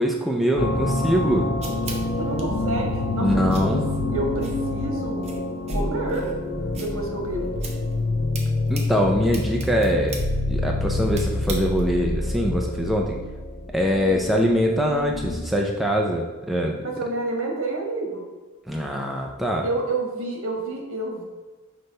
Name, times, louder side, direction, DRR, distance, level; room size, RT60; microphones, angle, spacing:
voice 1, 0.0-1.5 3.2-3.8 8.7-10.2 10.5-13.2 13.7-16.8 18.7-19.7, equal, ahead, -1 dB, 0.4 m, -23 dB
sound 1, 0.6-15.6, left 2 dB, 85° left, 1.0 m, -27 dB
sound 2, 1.0-12.1, right 4 dB, 30° right, 0.9 m, -43 dB
voice 2, 2.2-3.8 4.1-5.3 5.7-6.3 6.7-7.6 16.8-18.3 19.6-21.2, right 2 dB, 60° right, 0 dB, 1.5 m, -29 dB
6.1 x 3.3 x 5.3 m, 1.3 s
head